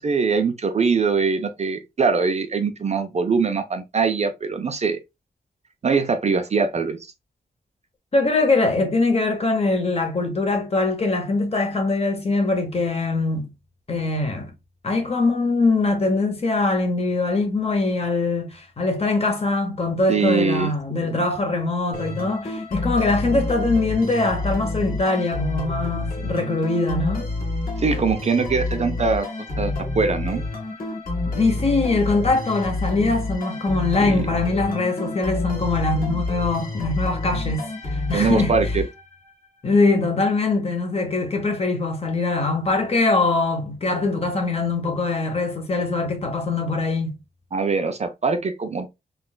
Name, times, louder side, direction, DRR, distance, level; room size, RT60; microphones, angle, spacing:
voice 1, 0.0-5.0 5.8-7.0 20.1-21.2 27.8-29.3 29.6-30.5 34.0-34.2 38.1-38.8 47.5-48.9, right 4 dB, 40° right, 0.4 m, -22 dB
voice 2, 8.1-13.5 13.9-14.5 14.8-27.3 31.2-38.5 39.6-47.2, left 3 dB, 35° left, 0.8 m, -22 dB
sound 1, 21.9-39.5, left 2 dB, 60° left, 1.6 m, -28 dB
3.7 x 2.3 x 2.2 m
wide cardioid pair, 125°, 17 cm